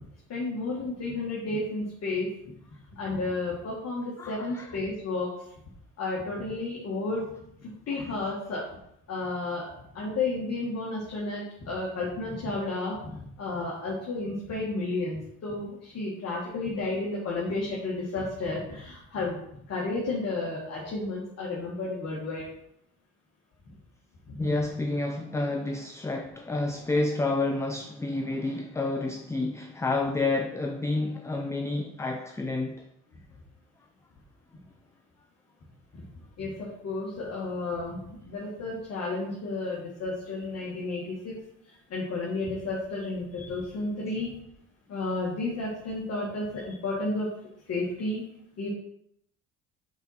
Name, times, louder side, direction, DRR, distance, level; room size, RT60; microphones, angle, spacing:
voice 1, 0.3-2.3 2.9-5.3 6.0-7.2 7.6-8.7 9.1-9.7 9.9-13.1 13.4-19.4 19.7-22.4 24.3-24.4 35.9-36.0 36.4-41.3 41.9-44.3 44.9-47.3 47.7-48.2 48.6-48.7, left 2 dB, 50° left, 1.9 m, -32 dB
voice 2, 4.2-4.7 24.4-32.8, left 2 dB, 10° left, 0.5 m, -29 dB
5.9 x 4.3 x 5.6 m
cardioid pair, 105°, 33 cm